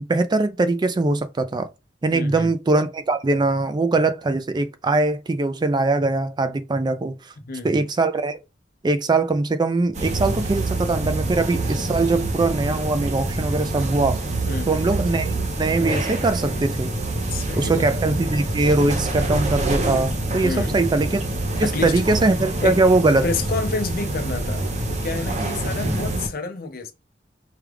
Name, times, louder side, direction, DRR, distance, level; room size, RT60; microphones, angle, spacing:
voice 1, 0.0-1.7 2.0-7.3 7.6-8.4 8.8-14.2 14.7-16.9 17.6-21.2 21.6-23.2, right 3 dB, 25° right, 0.4 m, -21 dB
voice 2, 2.1-2.5 7.4-7.9 14.5-14.8 17.3-17.9 20.4-20.9 21.6-22.1 22.6-22.8 23.0-26.9, left 3 dB, 55° left, 0.7 m, -29 dB
sound 1, 9.9-26.3, right 2 dB, 40° right, 0.8 m, -26 dB
4.7 x 2.3 x 3.3 m
head